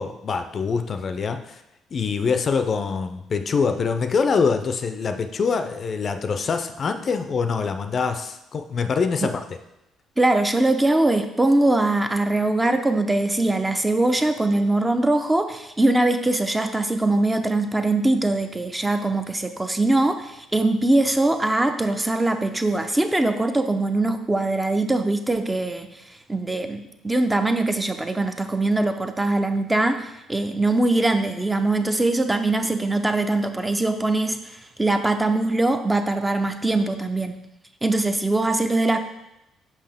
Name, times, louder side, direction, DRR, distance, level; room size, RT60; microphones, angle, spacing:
voice 1, 0.0-1.6 1.9-9.4, left 5 dB, 45° left, 7 dB, 0.5 m, -24 dB
voice 2, 10.2-25.9 26.3-37.4 37.8-39.0, right 2 dB, 15° right, 7 dB, 0.5 m, -22 dB
5.6 x 5.0 x 3.5 m, 0.88 s
supercardioid pair, 80°, 0 cm